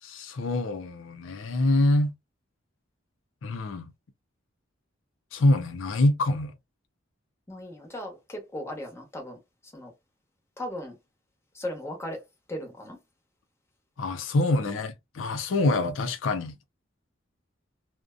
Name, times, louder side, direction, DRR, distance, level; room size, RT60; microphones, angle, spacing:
voice 1, 0.0-2.1 3.4-3.9 5.3-6.5 14.0-16.6, left 2 dB, 85° left, 0.5 m, -25 dB
voice 2, 7.5-9.9 10.6-11.0 11.5-12.2 12.5-13.0 14.6-14.8, left 1 dB, 15° left, 0.9 m, -37 dB
2.5 x 2.1 x 2.3 m
head